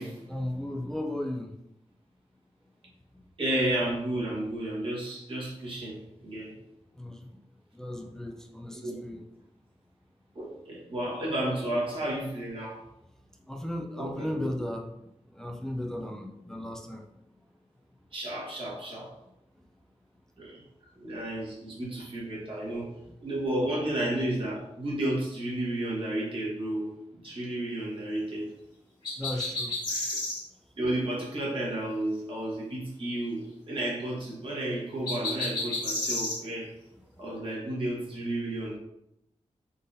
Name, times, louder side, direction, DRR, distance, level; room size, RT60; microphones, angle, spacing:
voice 1, 0.3-1.5 6.9-7.3 7.7-9.3 13.5-14.9 15.3-17.1 29.2-29.7, left 1 dB, 5° left, 2 dB, 0.4 m, -35 dB
voice 2, 3.4-6.5 8.8-8.9 10.3-12.8 14.0-14.5 18.1-19.1 20.4-20.6 21.0-22.9 23.2-26.9 27.2-28.5 29.3-29.5 29.9-30.2 30.8-36.7 37.2-38.8, right 1 dB, 50° right, -5 dB, 1.4 m, -32 dB
sound 1, 29.0-30.4 35.1-36.4, left 2 dB, 40° left, 1.3 m, -31 dB
3.9 x 3.8 x 2.6 m, 0.83 s
wide cardioid pair, 155°, 12 cm